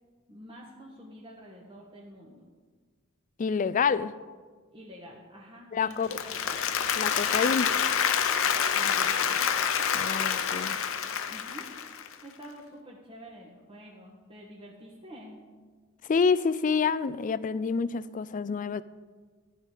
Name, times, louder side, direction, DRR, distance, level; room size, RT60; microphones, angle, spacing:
voice 1, 0.3-2.5 4.7-6.7 8.7-9.4 11.3-15.4, equal, 25° right, -4 dB, 1.4 m, -48 dB
voice 2, 3.4-4.1 5.7-6.1 7.0-7.7 9.9-10.8 16.1-18.8, left 5 dB, 35° left, 17 dB, 0.4 m, -27 dB
Applause, 5.9-12.1, left 7 dB, 65° left, 0.8 m, -27 dB
14.5 x 5.0 x 9.2 m, 1.5 s
head